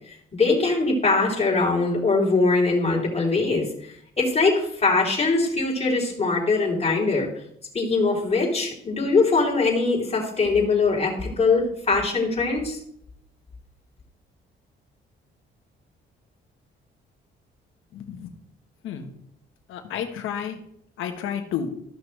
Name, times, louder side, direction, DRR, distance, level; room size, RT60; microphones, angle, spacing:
voice 1, 0.1-7.3 7.7-12.8, left 3 dB, 30° left, -3 dB, 3.7 m, -22 dB
voice 2, 17.9-18.3 18.8-19.1 19.7-20.6 21.0-21.7, left 8 dB, 85° left, 5 dB, 1.4 m, -31 dB
14.5 x 6.2 x 3.4 m, 0.70 s
cardioid pair, 90°, 20 cm